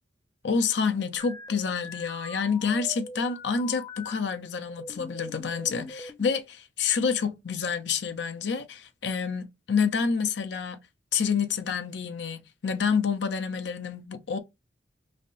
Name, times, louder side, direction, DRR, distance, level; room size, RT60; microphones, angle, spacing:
voice 1, 0.4-10.8 11.1-14.4, left 6 dB, 75° left, 0.6 m, -28 dB
sound 1, 1.2-4.2 4.7-6.3, left 2 dB, 20° left, 0.4 m, -42 dB
3.3 x 2.6 x 2.4 m
head